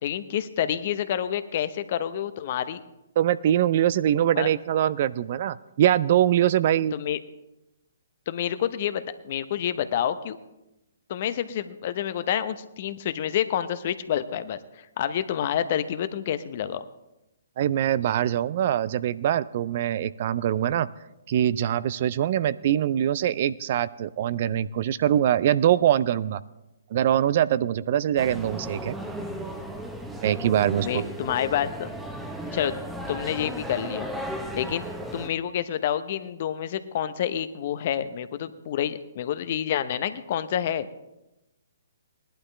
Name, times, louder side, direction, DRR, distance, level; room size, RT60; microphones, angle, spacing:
voice 1, 0.0-2.8 4.4-4.5 6.9-7.2 8.3-10.4 11.1-16.8 30.8-31.9 32.5-32.8 33.1-34.1 34.5-34.9 35.1-40.9, left 10 dB, 45° left, 12 dB, 0.8 m, -28 dB
voice 2, 3.2-6.9 17.6-20.9 21.3-26.4 26.9-29.0 30.2-31.0, right 11 dB, 45° right, 17 dB, 0.4 m, -23 dB
sound 1, 28.2-35.3, equal, 5° right, 1.1 m, -35 dB
18.5 x 11.5 x 3.3 m, 0.95 s
figure-of-eight pair, 135°, 0 cm